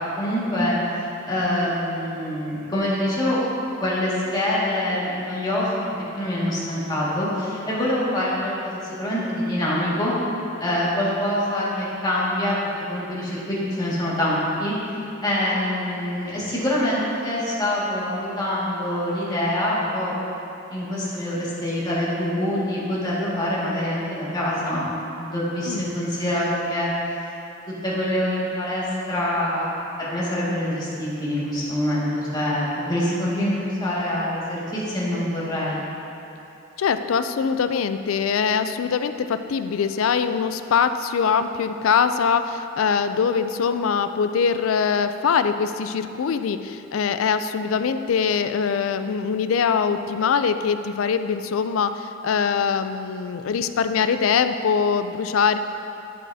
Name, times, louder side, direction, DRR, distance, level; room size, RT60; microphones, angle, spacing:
voice 1, 0.2-3.4 3.8-5.9 6.1-10.1 10.6-12.6 12.9-20.2 20.7-24.8 25.2-26.9 27.8-29.7 30.0-35.8, left 1 dB, 20° left, -8 dB, 2.0 m, -25 dB
voice 2, 36.8-55.6, left 6 dB, 80° left, 10 dB, 0.4 m, -23 dB
10.5 x 8.3 x 2.7 m, 2.8 s
head